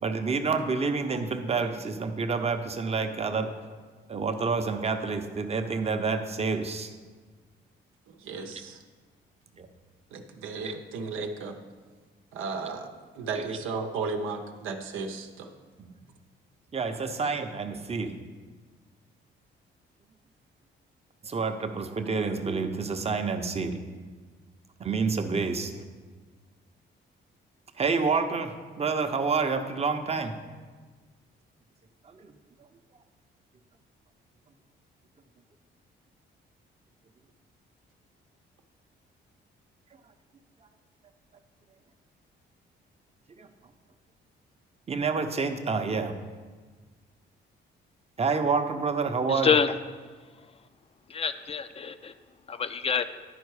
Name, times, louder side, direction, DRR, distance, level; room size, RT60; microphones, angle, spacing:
voice 1, 0.0-3.7 4.1-6.9 9.6-9.7 16.7-18.2 21.2-23.8 24.8-25.7 27.8-30.3 32.1-32.3 43.4-43.5 44.9-46.2 48.2-49.5, right 4 dB, 30° right, 7 dB, 0.7 m, -28 dB
voice 2, 8.1-8.8 10.1-11.6 12.3-15.5, right 4 dB, 90° right, 4 dB, 0.8 m, -35 dB
voice 3, 49.3-49.7 51.1-52.1 52.5-53.0, left 6 dB, 30° left, 11 dB, 0.5 m, -26 dB
11.0 x 4.5 x 4.8 m, 1.4 s
cardioid pair, 90°, 20 cm